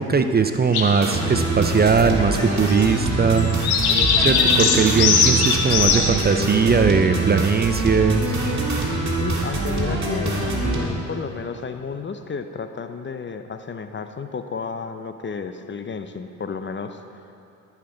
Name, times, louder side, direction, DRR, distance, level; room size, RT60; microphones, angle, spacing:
voice 1, 0.0-3.5 4.2-8.4, right 5 dB, 25° right, 7 dB, 0.5 m, -20 dB
sound 1, 0.7-6.5, left 5 dB, 75° left, 1.0 m, -22 dB
sound 2, 1.0-10.8, right 2 dB, 45° right, 1.9 m, -24 dB
Laughter, 2.2-2.9 3.7-6.1 6.6-7.4 8.2-8.4 9.2-11.4, equal, 10° left, 2.3 m, -36 dB
voice 2, 9.2-17.2, left 5 dB, 30° left, 8 dB, 0.6 m, -32 dB
13.5 x 5.9 x 3.9 m, 2.8 s
supercardioid pair, 55°, 37 cm